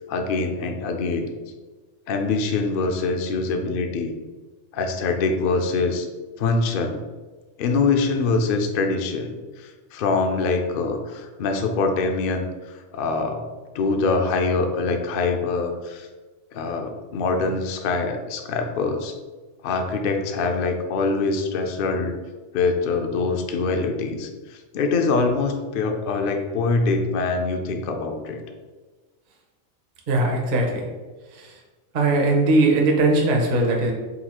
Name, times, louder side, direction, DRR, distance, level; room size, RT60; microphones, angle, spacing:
voice 1, 0.1-1.3 2.1-4.2 4.7-6.1 6.4-7.0 7.6-13.5 13.7-16.1 16.5-19.2 19.6-22.2 22.5-28.4, left 3 dB, 70° left, 4 dB, 0.5 m, -24 dB
voice 2, 30.1-30.9 31.3-31.6 31.9-33.9, right 2 dB, 45° right, 0 dB, 0.6 m, -20 dB
4.1 x 2.4 x 4.1 m, 1.3 s
omnidirectional pair, 1.4 m